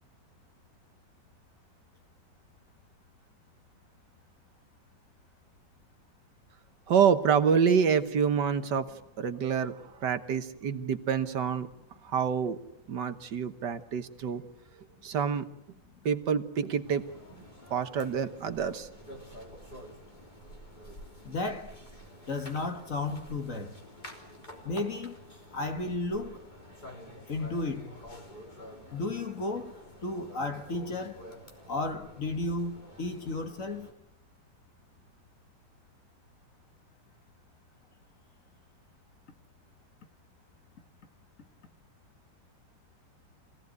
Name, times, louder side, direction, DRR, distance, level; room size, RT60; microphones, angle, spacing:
voice 1, 6.9-8.9 9.2-11.7 12.0-12.6 12.9-14.4 15.0-15.5 16.1-17.0 17.7-18.9, right 7 dB, 70° right, 1.8 m, -27 dB
sound 1, 16.8-33.9, equal, 25° left, 3.7 m, -49 dB
voice 2, 21.2-21.8 22.3-23.8 24.6-25.2 25.5-26.5 27.3-28.0 28.9-31.3 31.7-33.9, left 2 dB, 45° left, 1.9 m, -33 dB
26.0 x 17.0 x 9.4 m
omnidirectional pair, 2.0 m